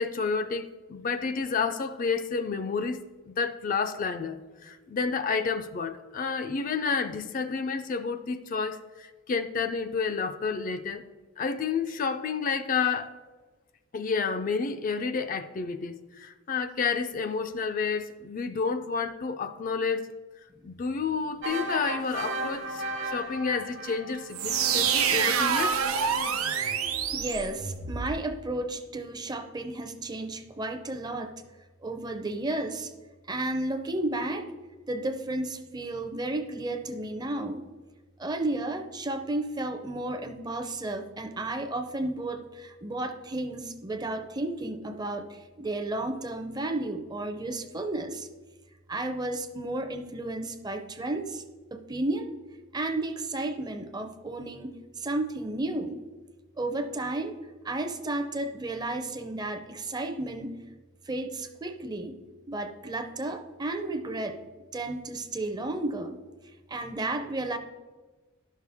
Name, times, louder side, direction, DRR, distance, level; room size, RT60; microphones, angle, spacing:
voice 1, 0.0-3.0 3.3-11.0 11.4-13.1 13.9-20.1 20.6-25.8, left 5 dB, 40° left, 0.4 m, -30 dB
sound 1, 21.4-24.9, right 2 dB, 60° right, 1.0 m, -35 dB
sound 2, 24.3-28.1, right 7 dB, 90° right, 0.8 m, -27 dB
voice 2, 27.1-31.3 31.8-32.9 33.3-34.5 34.9-37.7 38.2-48.3 48.9-51.4 51.7-52.3 52.7-56.0 56.6-57.4 57.6-60.6 61.1-62.2 62.5-64.4 64.7-66.2 66.7-67.6, right 2 dB, 20° right, 0.5 m, -33 dB
11.5 x 6.5 x 3.5 m
head